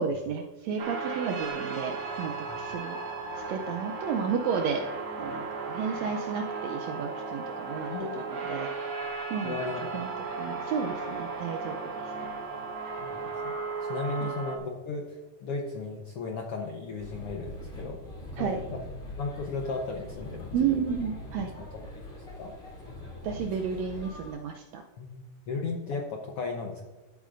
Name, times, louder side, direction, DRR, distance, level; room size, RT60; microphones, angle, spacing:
voice 1, 0.0-3.0 3.5-4.8 5.2-8.7 9.3-9.6 9.9-10.1 10.4-12.1 14.2-14.3 18.4-18.6 20.5-21.5 23.2-24.8, right 6 dB, 80° right, 4 dB, 1.6 m, -32 dB
sound 1, 0.8-14.6, right 4 dB, 50° right, 2.0 m, -35 dB
voice 2, 7.9-8.2 9.4-10.0 13.0-13.5 13.8-18.0 18.3-18.8 19.2-20.8 21.6-22.0 22.4-22.5 25.0-26.8, left 4 dB, 70° left, 1 dB, 1.4 m, -36 dB
sound 2, 17.0-24.3, left 1 dB, 20° left, 1.8 m, -42 dB
13.5 x 8.3 x 2.5 m, 1.2 s
omnidirectional pair, 3.7 m